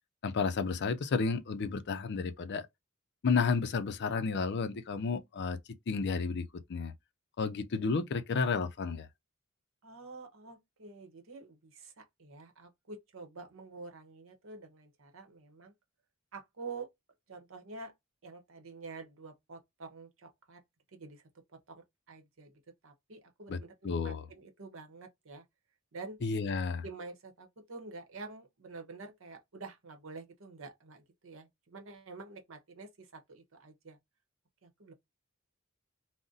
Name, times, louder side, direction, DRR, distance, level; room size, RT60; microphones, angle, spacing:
voice 1, 0.2-2.7 3.2-5.6 5.9-6.9 7.4-9.1 23.5-23.6 23.8-24.2 26.2-26.8, left 4 dB, 55° left, 0.4 m, -31 dB
voice 2, 9.8-15.7 16.3-16.9 17.3-17.9 18.2-20.6 20.9-21.2 21.5-25.4 25.9-26.2 26.8-34.0 34.6-34.9, right 3 dB, 65° right, 0.8 m, -48 dB
2.5 x 2.0 x 3.8 m
head